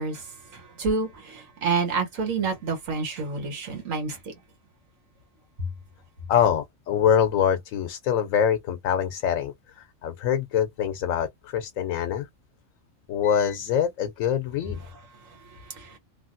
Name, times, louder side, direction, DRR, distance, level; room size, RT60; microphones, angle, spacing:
voice 1, 0.0-4.3 15.3-16.0, right 4 dB, 85° right, 1.5 m, -29 dB
voice 2, 6.3-12.3 13.1-14.9, left 8 dB, 85° left, 1.0 m, -24 dB
3.3 x 2.5 x 2.5 m
omnidirectional pair, 1.3 m